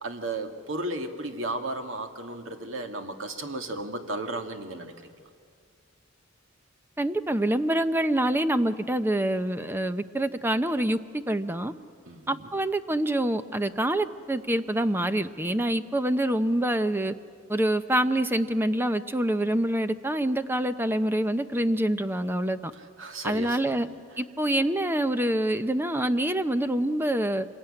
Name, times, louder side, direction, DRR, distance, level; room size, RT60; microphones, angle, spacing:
voice 1, 0.0-5.1 12.1-12.5 23.0-23.9, right 2 dB, 70° right, 5 dB, 2.1 m, -34 dB
voice 2, 7.0-11.7 12.3-17.1 17.5-22.7 23.2-23.9 24.2-27.5, right 1 dB, 10° right, 10 dB, 0.7 m, -26 dB
25.5 x 22.0 x 9.9 m, 2.1 s
head